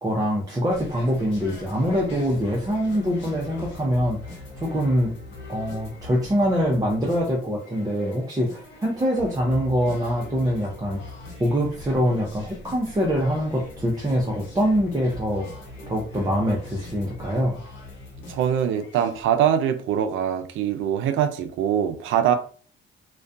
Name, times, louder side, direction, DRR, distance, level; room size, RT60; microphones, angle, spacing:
voice 1, 0.0-5.1 5.5-11.0 11.4-17.6, equal, 20° right, 0.6 m, -24 dB
sound 1, 0.7-19.2, left 2 dB, 65° left, 1.0 m, -41 dB
voice 2, 18.3-22.4, right 9 dB, 80° right, 0.4 m, -23 dB
2.3 x 2.2 x 2.6 m
cardioid pair, 90°, 20 cm